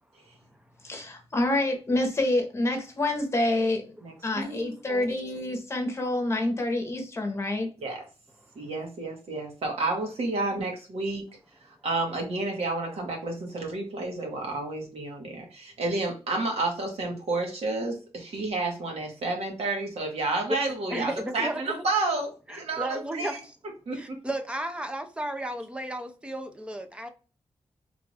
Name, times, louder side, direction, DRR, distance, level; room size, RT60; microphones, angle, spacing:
voice 1, 0.8-3.9 4.2-7.7, left 1 dB, 25° left, 1.0 m, -27 dB
voice 2, 4.0-5.5 7.8-8.0 8.5-11.2 11.8-23.4 23.9-24.0, right 2 dB, 70° right, 1.4 m, -31 dB
voice 3, 20.9-21.7 22.5-23.6 23.9-27.1, right 1 dB, 10° right, 0.5 m, -33 dB
3.5 x 2.5 x 3.2 m
wide cardioid pair, 170°, 11 cm